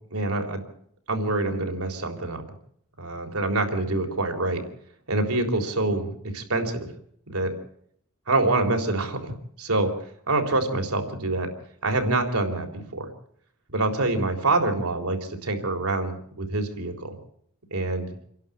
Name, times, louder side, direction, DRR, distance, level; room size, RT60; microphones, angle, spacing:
voice 1, 0.1-0.6 1.1-2.4 3.0-4.6 5.1-6.9 7.3-7.5 8.3-9.9 10.3-11.5 11.8-13.1 13.7-17.2 17.7-18.2, right 2 dB, 90° right, 5 dB, 3.9 m, -26 dB
27.5 x 11.5 x 8.6 m, 0.68 s
head